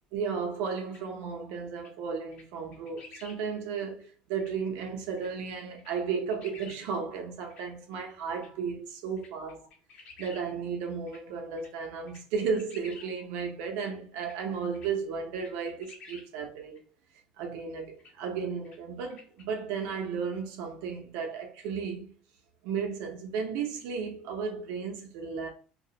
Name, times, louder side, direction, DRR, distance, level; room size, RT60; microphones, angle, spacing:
voice 1, 0.1-9.7 10.2-16.8 17.4-22.2 22.6-25.5, right 6 dB, 85° right, 0.7 m, -34 dB
sound 1, 0.9-1.0 1.8-1.9 2.3-2.4 2.7-3.4 3.8-3.9 4.4-4.5 5.2-5.3 5.8-6.8 7.1-7.2 7.5-7.6 8.4-8.5 9.2-10.4 10.8-11.2 11.6-11.7 12.1-13.1 13.8-13.9 14.2-14.4 14.7-14.9 15.4-16.2 16.7-16.8 18.0-18.1 18.6-18.8 19.1-19.4, left 4 dB, 50° left, 0.7 m, -51 dB
2.3 x 2.0 x 2.7 m
cardioid pair, 175°, 3 cm